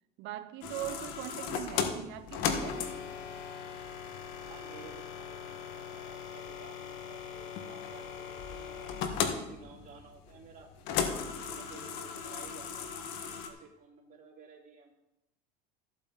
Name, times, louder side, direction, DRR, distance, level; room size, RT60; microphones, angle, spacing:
voice 1, 0.2-3.0, right 13 dB, 60° right, 12 dB, 0.8 m, -41 dB
sound 1, 0.6-13.5, left 7 dB, 65° left, 1.7 m, -37 dB
voice 2, 4.4-9.0 9.3-10.7 11.4-14.9, right 5 dB, 40° right, -1 dB, 3.0 m, -54 dB
14.0 x 8.3 x 4.1 m, 0.90 s
supercardioid pair, 110°, 21 cm